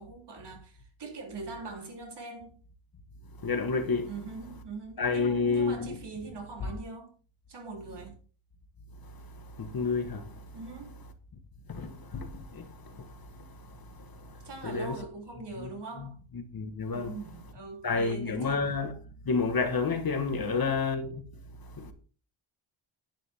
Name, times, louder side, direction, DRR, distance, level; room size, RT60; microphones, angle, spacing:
voice 1, 0.0-2.6 4.1-7.1 7.5-8.2 10.5-11.0 14.4-16.2 16.9-18.6 20.3-20.7, right 3 dB, 55° right, 3.6 m, -42 dB
voice 2, 3.4-4.1 5.0-6.0 9.6-10.3 11.7-13.1 14.2-15.0 15.6-15.7 16.0-17.2 17.8-19.0 19.2-21.2 21.8-21.9, left 4 dB, 45° left, 1.5 m, -30 dB
10.5 x 10.0 x 3.6 m
wide cardioid pair, 145°, 50 cm